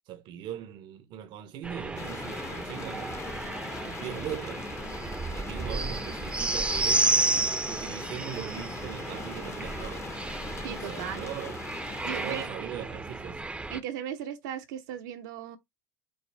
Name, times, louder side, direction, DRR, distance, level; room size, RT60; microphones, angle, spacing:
voice 1, 0.1-3.3 3.8-4.7 5.3-7.2 7.6-10.1 10.9-11.6 12.0-13.4, right 10 dB, 55° right, 0.8 m, -40 dB
sound 1, 1.6-13.8, right 2 dB, 10° right, 0.6 m, -32 dB
sound 2, 2.0-12.5, left 5 dB, 30° left, 0.8 m, -42 dB
voice 2, 10.6-11.2 12.0-12.8 13.7-15.6, right 9 dB, 80° right, 0.9 m, -37 dB
5.4 x 2.0 x 4.5 m
supercardioid pair, 100°, 10 cm